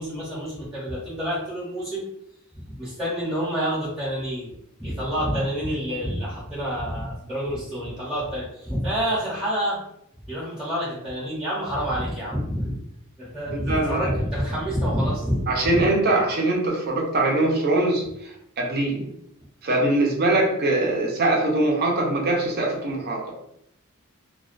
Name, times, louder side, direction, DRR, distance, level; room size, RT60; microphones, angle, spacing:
voice 1, 0.0-2.1 2.5-4.5 4.8-9.8 10.3-12.8 13.2-15.8, equal, 5° right, -9 dB, 0.8 m, -28 dB
voice 2, 13.5-14.1 15.5-19.1 19.6-23.2, right 2 dB, 45° right, 0 dB, 0.6 m, -22 dB
2.3 x 2.2 x 2.4 m, 0.76 s
head